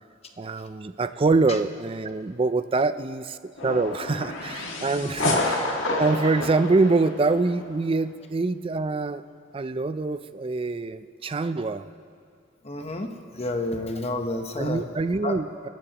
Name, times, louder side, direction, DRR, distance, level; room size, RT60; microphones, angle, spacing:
voice 1, 0.4-5.7 6.0-9.2 9.5-11.9 14.6-15.7, right 3 dB, 25° right, 12 dB, 0.4 m, -25 dB
sound 1, 3.6-7.6, left 2 dB, 70° left, 1.7 m, -29 dB
voice 2, 5.0-5.3 12.6-14.8 15.2-15.4, left 1 dB, 30° left, 5 dB, 0.9 m, -30 dB
27.5 x 13.5 x 2.9 m, 2.2 s
head